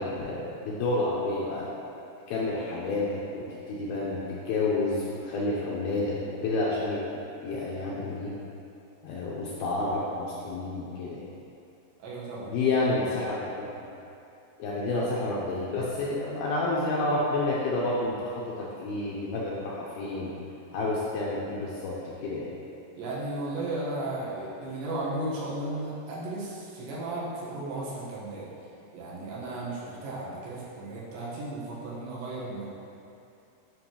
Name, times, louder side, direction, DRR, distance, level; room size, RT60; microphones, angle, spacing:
voice 1, 0.0-1.7 2.3-4.2 4.5-6.2 6.4-7.0 7.4-8.3 9.0-11.2 12.5-13.9 14.6-18.3 18.6-20.3 20.7-21.9 22.2-22.5, left 2 dB, 80° left, -6 dB, 2.3 m, -29 dB
voice 2, 12.0-12.6 22.9-28.5 28.9-32.7, right 2 dB, 80° right, -6 dB, 3.5 m, -35 dB
9.6 x 5.9 x 3.0 m, 2.7 s
omnidirectional pair, 5.2 m